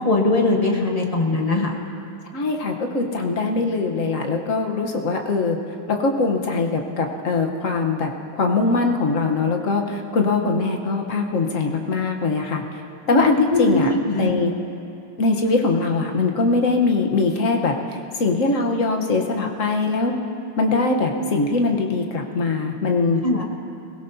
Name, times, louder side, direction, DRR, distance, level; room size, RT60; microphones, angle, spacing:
voice 1, 0.0-1.7 13.1-14.3 23.2-23.4, left 2 dB, 25° left, 0 dB, 0.9 m, -21 dB
voice 2, 2.3-5.6 5.9-8.1 8.4-12.8 13.1-13.9 14.2-14.5 15.2-20.2 20.6-23.2, left 3 dB, 50° left, 2 dB, 1.1 m, -22 dB
22.5 x 17.0 x 2.7 m, 2.6 s
omnidirectional pair, 2.4 m